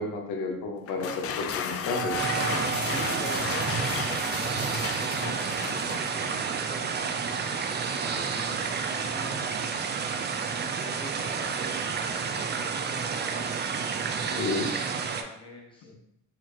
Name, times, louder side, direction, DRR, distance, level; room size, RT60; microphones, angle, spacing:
voice 1, 0.0-2.3 14.4-14.7 15.8-15.9, left 3 dB, 85° left, 2 dB, 0.8 m, -31 dB
sound 1, 0.9-6.5, left 7 dB, 50° left, 0.4 m, -34 dB
Wind instrument woodwind instrument, 1.8-7.6, right 6 dB, 5° right, 0.8 m, -39 dB
sound 2, 2.2-15.2, right 6 dB, 35° right, 0.4 m, -30 dB
voice 2, 2.8-7.5 8.0-9.6 10.5-13.5 14.3-15.9, left 1 dB, 15° left, -2 dB, 1.1 m, -44 dB
4.3 x 2.5 x 3.0 m, 0.78 s
cardioid pair, 90°, 30 cm